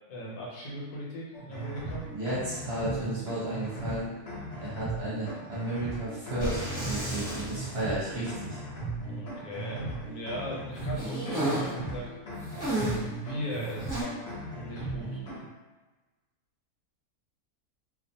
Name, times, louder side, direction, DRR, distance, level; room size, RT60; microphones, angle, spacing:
voice 1, 0.1-2.1 9.0-12.1 12.5-14.2 14.5-15.2, equal, 80° left, -4 dB, 1.2 m, -38 dB
sound 1, 1.3-15.5, right 2 dB, 50° left, 0.9 m, -38 dB
voice 2, 2.1-4.0 4.6-8.6, right 1 dB, 55° right, -8 dB, 0.9 m, -33 dB
sound 2, 6.4-7.8 8.1-8.2 10.9-11.8 12.5-13.1 13.9-14.0, right 1 dB, 15° right, 0.9 m, -32 dB
2.4 x 2.4 x 2.6 m, 1.2 s
omnidirectional pair, 1.6 m